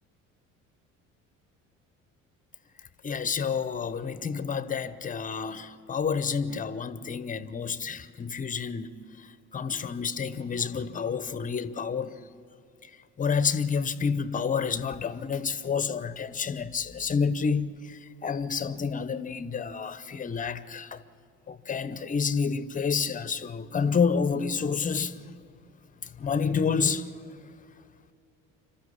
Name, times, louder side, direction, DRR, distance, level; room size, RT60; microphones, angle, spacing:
voice 1, 3.0-8.9 9.5-12.1 13.2-21.0 21.5-25.2 26.2-27.1, left 6 dB, 20° left, 0.8 m, -29 dB
27.5 x 13.0 x 8.6 m
figure-of-eight pair, 55°, 40 cm